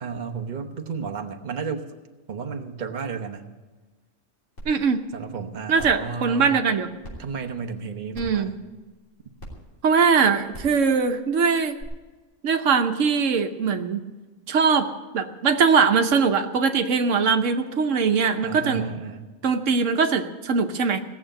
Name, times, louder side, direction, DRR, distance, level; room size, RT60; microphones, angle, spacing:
voice 1, 0.0-1.9 2.3-3.5 5.1-6.5 7.2-8.5 18.4-19.2, right 5 dB, 40° right, 3 dB, 1.0 m, -32 dB
sound 1, 4.6-4.7 5.1-5.2 5.8-6.0 7.0-7.1 8.1-8.4 9.4-9.5 10.5-10.7 11.8-11.9, equal, 75° left, 3.6 m, -39 dB
voice 2, 4.7-5.0 5.7-6.9 8.1-8.5 9.8-11.8 12.4-14.0 14.5-18.9 19.4-21.0, right 5 dB, 80° right, 7 dB, 1.2 m, -21 dB
17.5 x 7.3 x 8.9 m, 1.3 s
omnidirectional pair, 1.3 m